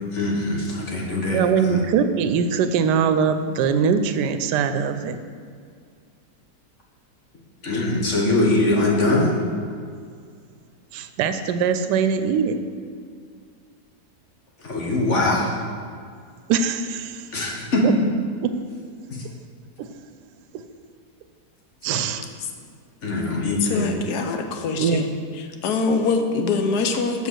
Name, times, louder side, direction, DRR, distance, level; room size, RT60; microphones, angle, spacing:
voice 1, 0.1-1.8 7.6-9.3 14.6-15.5 17.3-18.0 23.0-23.9, left 2 dB, 50° left, -2 dB, 1.4 m, -22 dB
voice 2, 1.3-5.2 10.9-12.6 16.5-17.3 17.8-18.0 18.4-18.6 19.8-19.9 20.5-20.6 21.8-22.3 24.8-25.0, right 6 dB, 80° right, 9 dB, 1.2 m, -22 dB
voice 3, 23.6-25.1 25.6-27.3, left 4 dB, 75° left, 5 dB, 1.3 m, -24 dB
7.4 x 5.3 x 6.2 m, 2.2 s
omnidirectional pair, 1.8 m